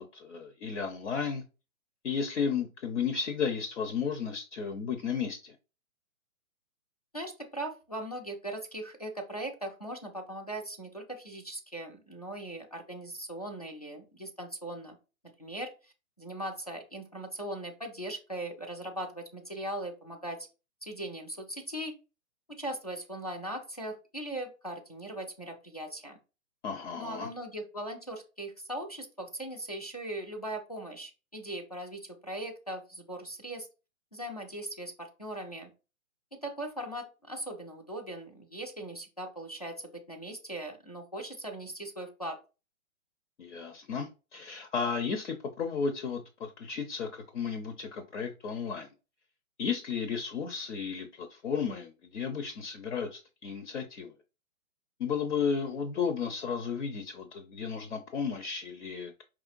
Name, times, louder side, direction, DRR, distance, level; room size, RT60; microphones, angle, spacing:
voice 1, 0.0-1.4 2.0-5.6 26.6-27.3 43.4-48.9 49.6-54.1 55.0-59.2, left 6 dB, 55° left, 0.7 m, -33 dB
voice 2, 7.1-15.0 15.4-20.5 20.8-21.9 22.5-26.2 27.0-33.7 34.1-35.7 36.3-42.4, right 1 dB, 30° left, 0.4 m, -39 dB
4.8 x 3.2 x 2.5 m
hypercardioid pair, 175°, 42 cm